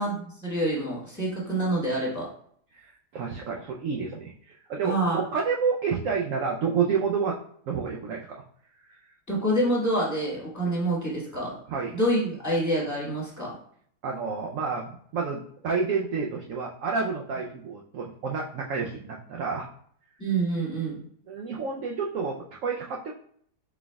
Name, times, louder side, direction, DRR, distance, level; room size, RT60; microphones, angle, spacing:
voice 1, 0.0-2.3 4.8-5.2 9.3-11.5 11.9-13.5 20.2-21.0, right 1 dB, 10° left, -5 dB, 1.4 m, -27 dB
voice 2, 2.7-7.4 7.7-8.4 8.9-9.0 11.7-12.0 14.0-19.7 21.3-23.1, right 5 dB, 70° right, -1 dB, 0.7 m, -29 dB
4.6 x 4.1 x 2.2 m, 0.62 s
omnidirectional pair, 1.8 m